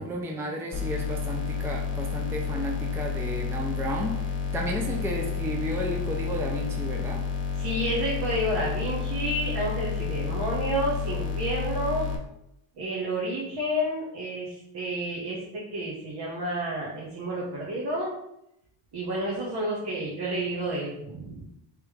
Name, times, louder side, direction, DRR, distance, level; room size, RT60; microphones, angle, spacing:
voice 1, 0.0-7.3, right 1 dB, 5° right, 0 dB, 0.4 m, -33 dB
sound 1, 0.7-12.2, left 6 dB, 40° left, 0.9 m, -30 dB
voice 2, 7.6-12.1 12.8-18.2 18.9-21.4, right 1 dB, 50° right, -4 dB, 1.1 m, -30 dB
3.4 x 3.0 x 4.8 m, 0.81 s
cardioid pair, 125°, 49 cm